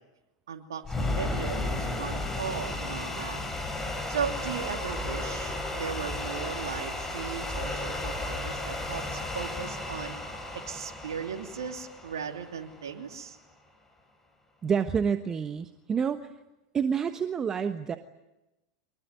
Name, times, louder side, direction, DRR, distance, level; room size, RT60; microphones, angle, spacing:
voice 1, 0.5-3.4 4.1-10.1 10.6-13.4, right 7 dB, 75° right, 3 dB, 2.9 m, -37 dB
sound 1, 0.8-13.0, left 2 dB, 15° left, 5.8 m, -34 dB
voice 2, 14.6-16.3 16.7-18.0, right 6 dB, 25° right, 9 dB, 1.2 m, -28 dB
24.5 x 22.0 x 9.7 m, 0.96 s
hypercardioid pair, 95°, 2 cm